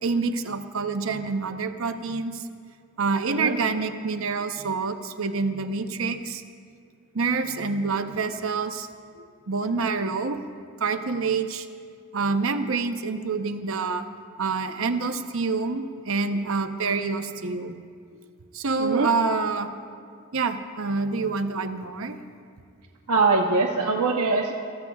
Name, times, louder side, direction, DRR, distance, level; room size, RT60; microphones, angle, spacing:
voice 1, 0.0-2.4 3.0-6.4 7.1-8.9 9.2-10.4 10.8-11.7 12.1-14.0 14.4-17.8 18.5-19.7 20.3-22.2, right 4 dB, 65° right, 8 dB, 0.8 m, -27 dB
voice 2, 18.8-19.1 23.1-24.5, right 3 dB, 90° right, 1 dB, 0.9 m, -22 dB
28.0 x 14.5 x 2.4 m, 2.2 s
head